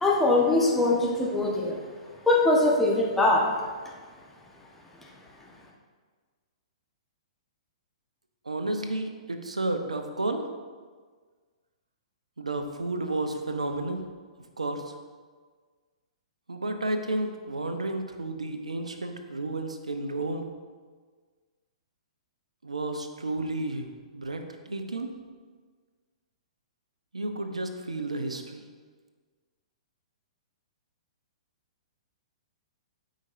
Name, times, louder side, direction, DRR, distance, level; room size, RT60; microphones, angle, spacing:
voice 1, 0.0-1.8 2.3-3.4, left 2 dB, 5° left, -3 dB, 1.2 m, -22 dB
voice 2, 8.5-10.4 12.4-14.0 14.6-14.8 16.5-20.5 22.6-25.1 27.1-28.6, right 2 dB, 75° right, 6 dB, 0.8 m, -32 dB
13.0 x 5.2 x 2.6 m, 1.5 s
figure-of-eight pair, 110°, 3 cm